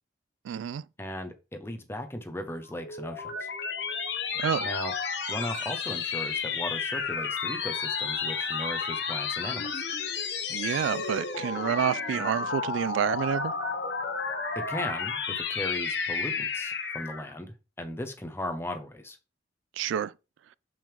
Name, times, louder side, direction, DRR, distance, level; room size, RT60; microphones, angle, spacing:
voice 1, 0.5-0.8 4.4-4.7 10.5-13.5 19.8-20.1, right 8 dB, 90° right, 0.3 m, -29 dB
voice 2, 1.0-3.5 4.6-4.9 5.3-9.8 14.5-15.2 15.5-19.2, left 1 dB, 15° left, 0.9 m, -37 dB
sound 1, 2.7-17.3, left 5 dB, 65° left, 1.1 m, -32 dB
6.1 x 5.4 x 3.4 m
head